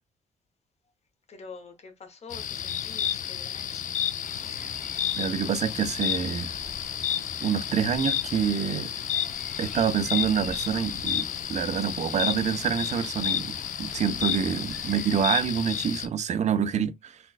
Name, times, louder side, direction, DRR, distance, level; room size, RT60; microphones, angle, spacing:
voice 1, 1.3-3.8 4.3-4.4, left 4 dB, 45° left, 1.0 m, -46 dB
sound 1, 2.3-16.1, left 10 dB, 60° left, 0.5 m, -31 dB
sound 2, 4.2-15.5, equal, ahead, 0.8 m, -48 dB
voice 2, 5.2-6.5 7.4-8.9 9.6-17.2, right 8 dB, 50° right, 0.5 m, -27 dB
4.0 x 2.2 x 2.4 m
cardioid pair, 90°, 15 cm